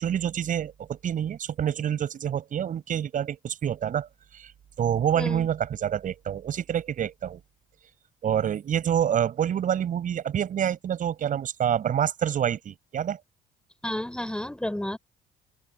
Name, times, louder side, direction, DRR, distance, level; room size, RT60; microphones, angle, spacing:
voice 1, 0.0-4.1 4.4-4.5 4.8-7.4 8.2-13.2, right 9 dB, 50° right, 6.5 m, -27 dB
voice 2, 5.1-5.5 13.8-15.0, left 1 dB, 5° left, 6.6 m, -31 dB
open air
cardioid pair, 110°, 17 cm